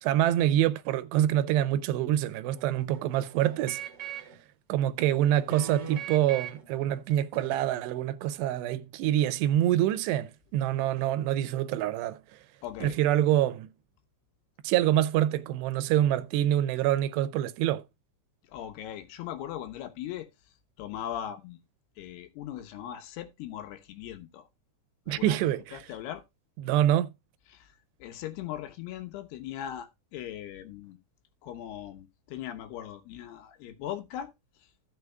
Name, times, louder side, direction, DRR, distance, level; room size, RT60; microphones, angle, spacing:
voice 1, 0.0-3.8 4.7-12.2 12.8-13.7 14.6-17.8 25.1-25.8 26.6-27.1, right 12 dB, 85° right, 2.8 m, -26 dB
sound 1, 2.5-4.4 5.0-6.7 7.3-7.5, right 7 dB, 50° right, 1.3 m, -41 dB
voice 2, 12.6-13.0 18.5-20.3 20.8-21.6 22.0-24.4 25.1-25.4 25.7-26.2 28.0-31.0 31.4-34.3, left 11 dB, 75° left, 3.0 m, -39 dB
15.5 x 6.4 x 2.3 m
omnidirectional pair, 4.8 m